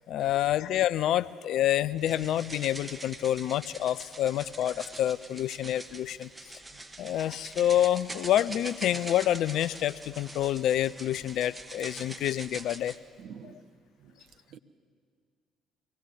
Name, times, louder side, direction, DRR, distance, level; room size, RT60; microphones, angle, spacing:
voice 1, 0.1-6.3 7.0-12.9 13.4-13.5, left 12 dB, 60° left, 16 dB, 0.5 m, -28 dB
sound 1, 2.0-13.0, right 2 dB, 15° right, 1.5 m, -44 dB
voice 2, 13.2-13.6 14.0-14.1 14.5-14.6, right 7 dB, 55° right, 9 dB, 1.1 m, -45 dB
24.0 x 18.5 x 7.3 m, 2.2 s
figure-of-eight pair, 50°, 0 cm